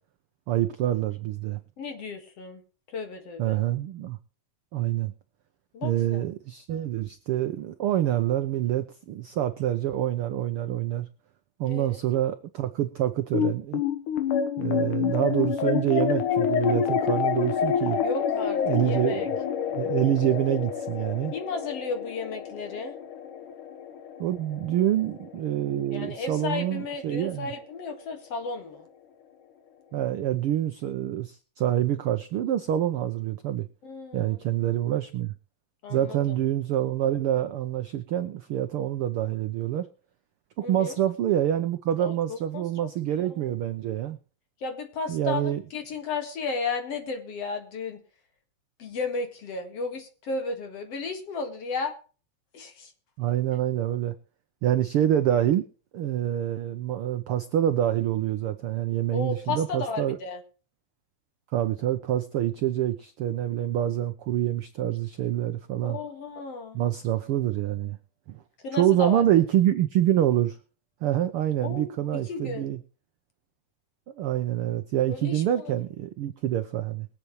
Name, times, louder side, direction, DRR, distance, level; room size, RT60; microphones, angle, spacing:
voice 1, 0.5-1.6 3.4-4.2 4.7-5.1 5.8-11.1 11.6-13.8 14.6-18.0 18.7-19.3 19.7-21.3 24.2-27.5 29.9-33.7 34.1-35.3 35.9-39.9 40.6-44.2 45.1-45.6 53.2-54.1 54.6-55.6 55.9-60.2 61.5-66.0 66.7-68.0 68.3-68.4 68.7-70.6 71.0-72.8 74.2-77.1, right 12 dB, 90° right, 10 dB, 1.2 m, -26 dB
voice 2, 1.8-2.6 2.9-3.6 5.7-6.3 11.7-12.0 18.0-19.3 21.3-22.9 25.9-28.9 33.8-34.4 35.8-36.4 40.6-41.0 42.0-42.9 43.2-43.4 44.6-48.0 48.8-52.0 52.5-52.9 59.1-60.4 65.8-66.8 68.6-69.2 71.6-71.9 72.3-72.7 75.1-75.7, left 4 dB, 55° left, 6 dB, 2.7 m, -34 dB
sound 1, 13.3-25.9, left 8 dB, 85° left, 3.1 m, -28 dB
23.0 x 8.5 x 3.1 m, 0.37 s
omnidirectional pair, 3.5 m